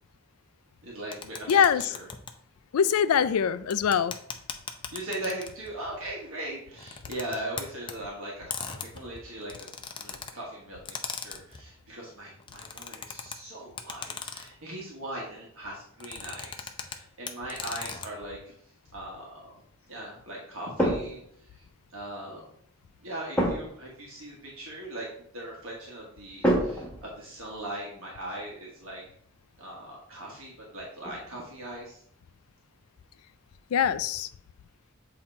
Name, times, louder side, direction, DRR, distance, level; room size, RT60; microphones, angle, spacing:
voice 1, 0.8-2.1 4.9-18.5 18.9-19.6 19.9-21.2 21.6-21.7 21.9-22.4 23.0-25.1 25.3-29.0 29.6-32.0, right 1 dB, 70° right, 1.4 m, -39 dB
sound 1, 1.1-2.3 3.7-5.7 6.7-7.9 8.5-10.3 10.9-11.6 12.4-13.4 13.8-14.6 16.0-17.0 17.3-18.1, left 6 dB, 25° left, 0.5 m, -38 dB
voice 2, 1.5-1.8 2.7-4.1 33.7-34.3, left 7 dB, 85° left, 0.4 m, -23 dB
sound 2, 20.8-21.3 23.4-23.9 26.4-27.6 31.0-31.4, equal, 5° left, 1.4 m, -27 dB
7.6 x 2.9 x 4.2 m
head